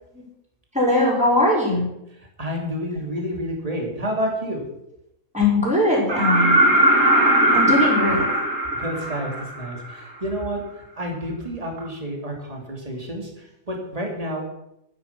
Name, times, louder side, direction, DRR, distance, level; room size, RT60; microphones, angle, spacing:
voice 1, 0.7-1.9 5.3-6.6 7.5-8.2, left 1 dB, 5° right, -5 dB, 5.6 m, -20 dB
voice 2, 2.4-4.6 7.6-7.8 8.7-10.6 11.0-14.4, equal, 25° right, 0 dB, 2.9 m, -29 dB
sound 1, 6.1-9.9 11.8-11.9, right 1 dB, 60° right, 2.5 m, -19 dB
12.5 x 10.0 x 6.0 m, 0.81 s
omnidirectional pair, 1.5 m